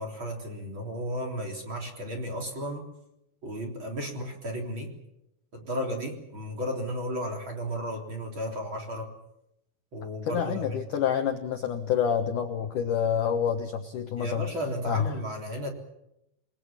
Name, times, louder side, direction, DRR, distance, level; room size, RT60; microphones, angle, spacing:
voice 1, 0.0-2.8 3.4-4.9 5.5-9.1 9.9-10.8 14.2-15.7, equal, 30° right, 2 dB, 3.8 m, -34 dB
voice 2, 10.2-14.5 14.8-15.2, left 8 dB, 65° left, 5 dB, 2.2 m, -28 dB
28.5 x 21.0 x 7.4 m, 0.84 s
omnidirectional pair, 5.2 m